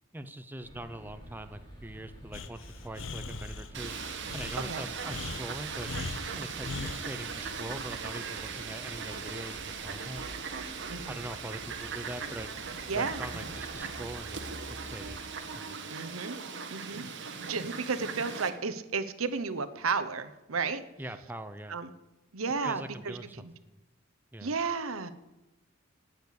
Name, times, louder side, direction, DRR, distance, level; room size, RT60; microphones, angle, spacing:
voice 1, 0.1-3.9 4.3-5.9 6.3-10.3 11.1-12.5 12.9-14.5 14.8-15.3 15.5-15.9 21.0-21.8 22.6-23.8 24.3-24.5, right 1 dB, 10° right, 9 dB, 0.7 m, -42 dB
sound 1, 0.6-15.2, equal, 20° left, 3.9 m, -49 dB
Breathing, 2.3-7.1, left 3 dB, 70° left, 0.9 m, -40 dB
Fowl, 3.7-18.5, right 5 dB, 60° right, 1.6 m, -39 dB
voice 2, 12.9-13.2 15.9-16.4 16.7-20.8 21.7-21.9 22.3-23.5 24.4-25.1, right 4 dB, 85° right, 12 dB, 1.0 m, -33 dB
18.0 x 6.8 x 8.5 m, 1.0 s
head